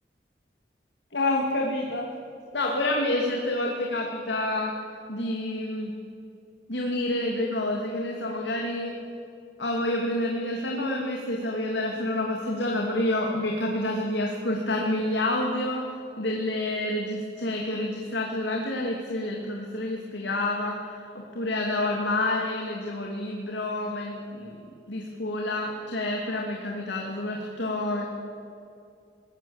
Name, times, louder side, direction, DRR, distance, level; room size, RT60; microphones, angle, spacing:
voice 1, 1.1-2.1 2.5-4.8 5.1-5.9 6.7-8.9 9.6-15.8 16.2-24.5 24.9-28.1, left 1 dB, 85° left, 0 dB, 2.6 m, -28 dB
22.0 x 18.0 x 7.3 m, 2.6 s
head